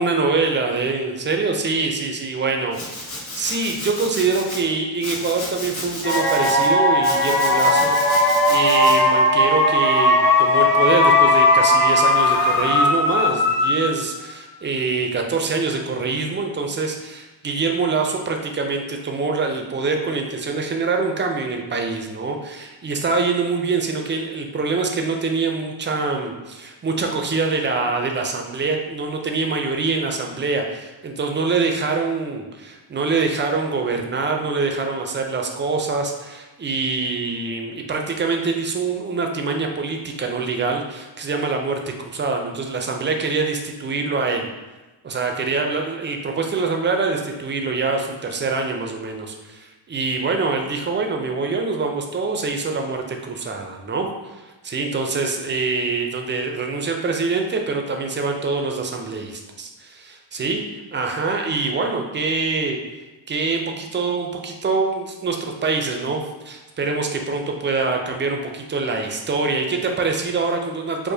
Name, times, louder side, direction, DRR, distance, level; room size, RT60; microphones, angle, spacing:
voice 1, 0.0-44.5 45.0-62.8 63.3-71.1, right 4 dB, 25° right, 3 dB, 0.4 m, -24 dB
Domestic sounds home sounds, 2.7-4.6 5.0-6.7 7.0-9.0, left 2 dB, 80° left, 1.5 m, -33 dB
sound 1, 6.0-14.1, left 1 dB, 25° left, 0.9 m, -17 dB
4.8 x 2.1 x 2.7 m, 1.1 s
cardioid pair, 90°, 47 cm